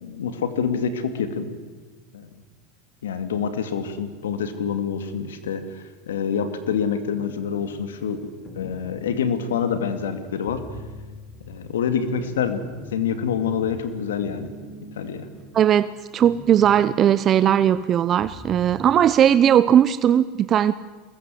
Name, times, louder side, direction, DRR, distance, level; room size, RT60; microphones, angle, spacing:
voice 1, 0.0-1.5 2.1-2.3 3.0-8.3 8.5-10.6 11.4-12.6 12.9-14.5 15.0-15.3, left 7 dB, 90° left, 10 dB, 2.4 m, -26 dB
sound 1, 7.1-19.2, left 2 dB, 30° left, 3.8 m, -43 dB
voice 2, 15.5-20.7, right 10 dB, 40° right, 15 dB, 0.7 m, -18 dB
23.0 x 20.5 x 7.8 m, 1.4 s
hypercardioid pair, 105°, 0 cm